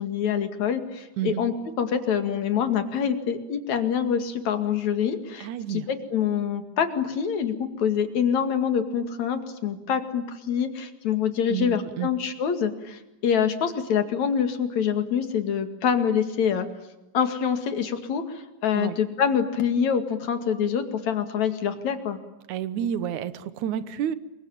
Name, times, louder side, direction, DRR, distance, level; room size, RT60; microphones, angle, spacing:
voice 1, 0.0-16.7 17.1-22.2, left 7 dB, 60° left, 8 dB, 3.3 m, -26 dB
voice 2, 5.4-5.9 11.5-12.1 18.7-19.0 22.5-24.2, right 10 dB, 65° right, 14 dB, 2.4 m, -30 dB
27.5 x 23.5 x 9.1 m, 0.97 s
omnidirectional pair, 3.9 m